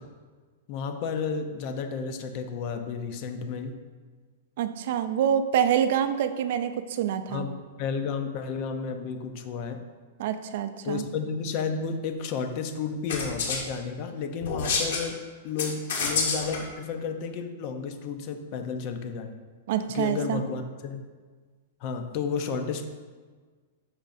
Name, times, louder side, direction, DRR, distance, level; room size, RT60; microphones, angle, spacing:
voice 1, 0.7-3.8 7.3-9.8 10.8-19.4 19.9-21.0 21.8-22.9, left 5 dB, 35° left, 7 dB, 0.7 m, -32 dB
voice 2, 4.6-7.5 10.2-11.0 19.7-20.4, right 9 dB, 50° right, 9 dB, 0.5 m, -26 dB
sound 1, 13.1-13.6 14.4-15.1 15.6-16.6, left 4 dB, 65° left, 1.5 m, -28 dB
10.5 x 6.3 x 2.6 m, 1.5 s
supercardioid pair, 170°, 0 cm